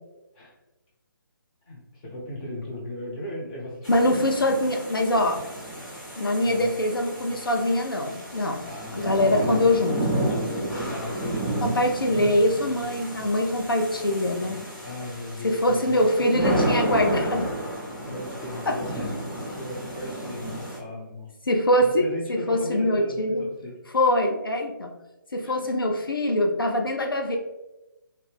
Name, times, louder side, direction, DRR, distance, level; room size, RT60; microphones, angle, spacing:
voice 1, 1.7-4.0 6.4-7.0 8.6-9.6 10.1-11.8 12.2-12.9 14.8-17.2 18.0-21.3 21.8-23.8 25.4-25.7, left 1 dB, 20° left, -5 dB, 0.8 m, -37 dB
sound 1, 3.8-20.8, right 1 dB, ahead, 0.3 m, -32 dB
voice 2, 3.9-5.4 6.2-8.7 8.9-10.0 11.6-14.6 15.4-17.5 18.7-18.8 21.4-23.5 23.9-24.9 25.3-27.4, left 1 dB, 80° left, 3 dB, 0.4 m, -23 dB
2.8 x 2.2 x 3.2 m, 1.0 s
figure-of-eight pair, 145°, 12 cm